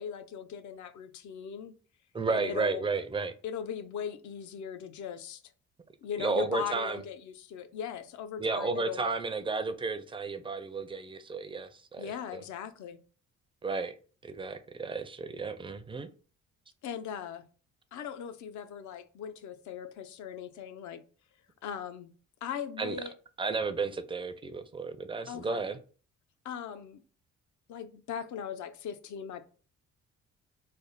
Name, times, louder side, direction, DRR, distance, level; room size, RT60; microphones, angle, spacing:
voice 1, 0.0-1.7 2.3-2.9 3.4-5.4 6.0-9.1 12.0-13.0 16.8-17.4 17.9-21.0 21.6-22.1 22.4-23.1 25.3-25.7 26.4-27.0 27.7-29.4, left 8 dB, 70° left, 0.6 m, -39 dB
voice 2, 2.1-3.3 6.2-7.0 8.4-12.4 13.6-14.0 14.2-16.1 22.8-23.0 23.4-25.8, right 4 dB, 15° right, 0.4 m, -33 dB
3.3 x 2.1 x 3.8 m
cardioid pair, 90°, 30 cm